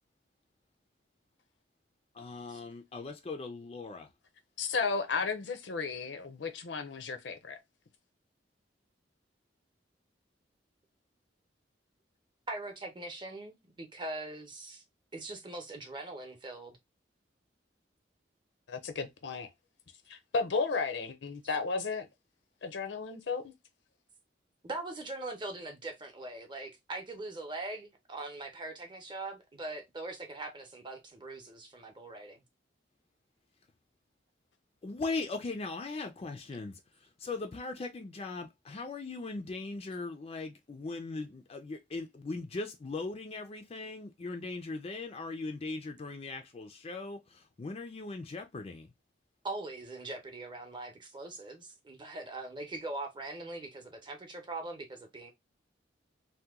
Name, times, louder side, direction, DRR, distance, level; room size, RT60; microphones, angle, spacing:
voice 1, 2.1-4.1 34.8-36.8 37.2-48.9, left 3 dB, 35° left, 0.4 m, -39 dB
voice 2, 4.6-7.6 18.7-19.5 20.1-22.1 22.6-23.5, left 4 dB, 75° left, 0.6 m, -34 dB
voice 3, 12.5-14.8 15.1-16.8 24.6-32.4 49.4-55.3, right 2 dB, 25° right, 0.7 m, -41 dB
2.8 x 2.2 x 3.5 m
head